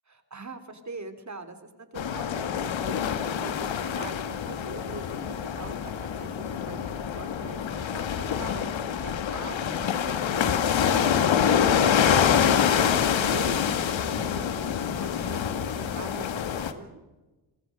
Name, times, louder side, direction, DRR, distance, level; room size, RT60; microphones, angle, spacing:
voice 1, 0.1-12.2 12.5-17.0, right 3 dB, 35° right, 8 dB, 3.7 m, -43 dB
sound 1, 2.0-16.7, left 8 dB, 65° left, 1.9 m, -26 dB
28.0 x 21.5 x 5.3 m, 1.2 s
supercardioid pair, 50°, 49 cm